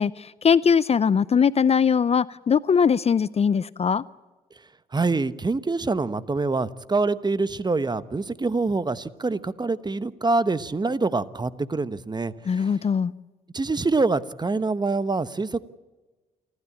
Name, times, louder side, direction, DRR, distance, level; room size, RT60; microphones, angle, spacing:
voice 1, 0.0-4.0 12.5-13.1, left 6 dB, 35° left, 19 dB, 0.6 m, -21 dB
voice 2, 4.9-12.7 13.5-15.6, right 3 dB, 25° right, 15 dB, 1.1 m, -25 dB
28.5 x 13.0 x 8.6 m, 1.2 s
hypercardioid pair, 55°, 18 cm